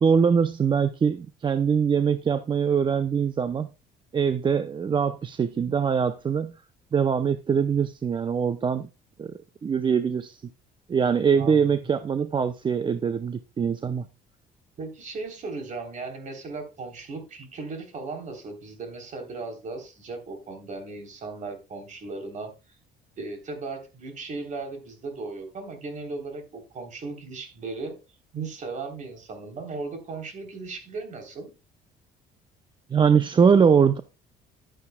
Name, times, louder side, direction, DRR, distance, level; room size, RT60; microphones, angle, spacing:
voice 1, 0.0-3.7 4.1-6.5 6.9-8.9 9.2-9.3 9.6-10.4 10.9-14.0 32.9-34.0, right 6 dB, 30° right, 0.6 m, -22 dB
voice 2, 11.4-11.9 14.8-22.5 23.2-28.0 28.3-31.5, right 3 dB, 45° right, 3.5 m, -37 dB
11.5 x 9.6 x 2.2 m
cardioid pair, 110°, 17 cm